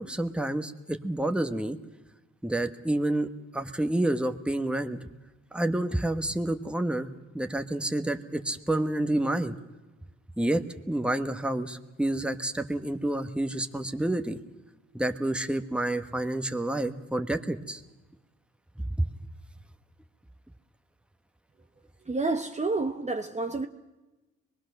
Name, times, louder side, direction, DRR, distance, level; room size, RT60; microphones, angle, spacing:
voice 1, 0.0-1.8 2.4-3.3 3.5-5.0 5.5-9.5 10.4-14.4 14.9-17.8, right 1 dB, 5° right, 1.3 m, -29 dB
voice 2, 22.1-23.7, right 3 dB, 25° right, 1.0 m, -29 dB
25.0 x 20.5 x 6.6 m
cardioid pair, 90°, 30 cm